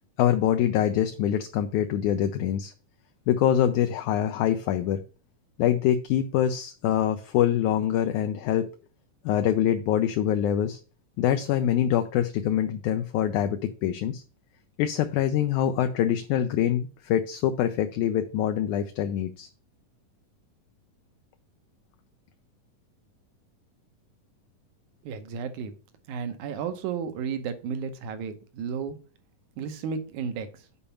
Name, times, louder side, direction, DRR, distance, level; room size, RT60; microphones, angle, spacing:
voice 1, 0.2-2.7 3.3-5.0 5.6-8.7 9.3-10.8 11.2-14.2 14.8-19.5, left 10 dB, 80° left, 7 dB, 1.9 m, -24 dB
voice 2, 25.0-25.7 26.1-29.0 29.6-30.5, right 6 dB, 75° right, 9 dB, 2.2 m, -33 dB
7.1 x 5.0 x 5.6 m, 0.37 s
omnidirectional pair, 3.8 m